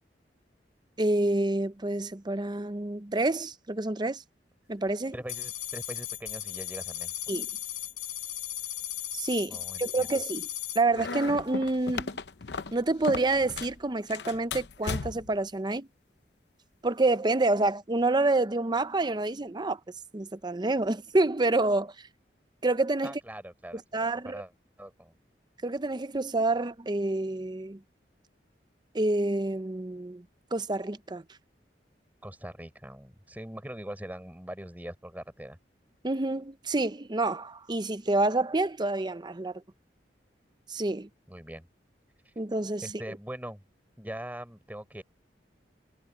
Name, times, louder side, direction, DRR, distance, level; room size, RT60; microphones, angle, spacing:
voice 1, 1.0-4.2 4.7-5.1 7.3-7.5 9.1-10.5 10.7-12.1 12.7-15.9 16.8-19.8 20.1-21.9 22.6-23.1 23.9-24.4 25.6-27.8 28.9-30.2 30.5-31.2 36.0-39.5 40.7-41.1 42.4-42.8, right 2 dB, 25° right, 0.7 m, -28 dB
voice 2, 5.1-7.1 9.5-10.1 23.0-23.8 24.2-24.5 24.8-25.2 32.2-35.6 41.3-41.7 42.8-43.6 44.0-45.0, right 1 dB, 10° right, 4.2 m, -42 dB
sound 1, 5.3-10.8, left 11 dB, 50° left, 4.9 m, -36 dB
sound 2, 10.9-13.8 14.1-15.4, left 4 dB, 70° left, 0.8 m, -36 dB
head